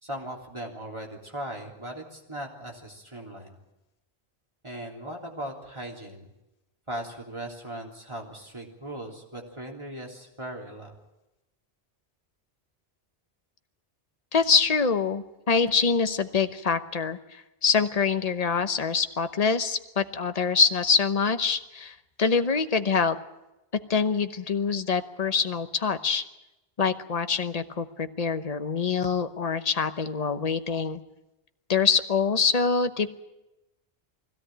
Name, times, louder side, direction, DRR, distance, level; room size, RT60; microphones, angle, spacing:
voice 1, 0.0-3.6 4.6-6.3 6.9-11.0, right 1 dB, 25° right, 0 dB, 3.4 m, -38 dB
voice 2, 14.3-23.2 23.9-26.2 26.8-31.0 31.7-33.1, left 5 dB, 40° left, 9 dB, 1.0 m, -25 dB
21.5 x 16.5 x 9.1 m, 0.98 s
omnidirectional pair, 1.1 m